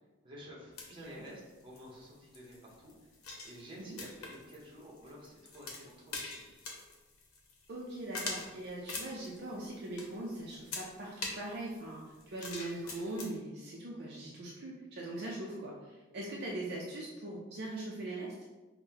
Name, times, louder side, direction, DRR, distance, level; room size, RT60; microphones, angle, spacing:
voice 1, 0.2-2.9 3.4-6.5, equal, 25° right, -4 dB, 0.8 m, -51 dB
sound 1, 0.8-13.3, left 3 dB, 90° left, 0.8 m, -45 dB
voice 2, 7.7-18.3, right 1 dB, 50° right, -3 dB, 0.5 m, -41 dB
5.4 x 2.1 x 2.8 m, 1.2 s
head